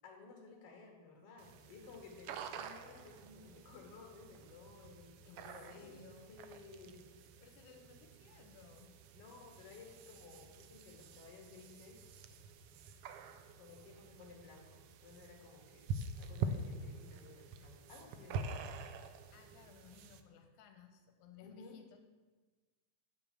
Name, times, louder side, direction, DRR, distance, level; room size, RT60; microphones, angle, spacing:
voice 1, 0.0-6.0 6.3-7.1 9.1-12.0 13.6-18.7 21.4-21.7, left 4 dB, 55° left, 1 dB, 2.6 m, -56 dB
sound 1, 1.4-20.2, right 4 dB, 85° right, 1.3 m, -47 dB
voice 2, 5.3-6.4 7.4-9.0 19.3-22.0, left 7 dB, 90° left, 5 dB, 2.2 m, -59 dB
8.5 x 5.9 x 7.4 m, 1.3 s
omnidirectional pair, 3.4 m